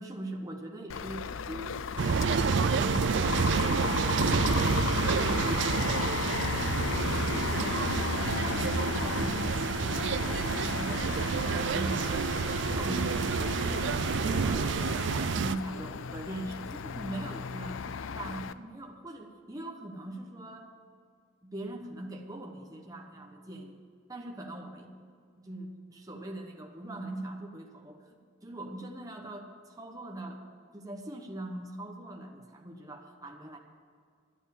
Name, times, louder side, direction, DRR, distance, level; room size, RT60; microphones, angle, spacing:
voice 1, 0.0-1.8 2.4-6.0 6.4-6.7 7.3-11.1 11.4-12.4 12.7-14.7 15.4-17.8 18.1-20.7 21.4-23.8 24.1-24.9 25.4-30.4 30.7-33.6, right 1 dB, 20° right, 1 dB, 1.1 m, -41 dB
sound 1, 0.9-18.5, left 6 dB, 85° left, 0.5 m, -35 dB
sound 2, 2.0-15.6, right 5 dB, 65° right, 0.4 m, -29 dB
12.0 x 9.1 x 8.5 m, 2.1 s
head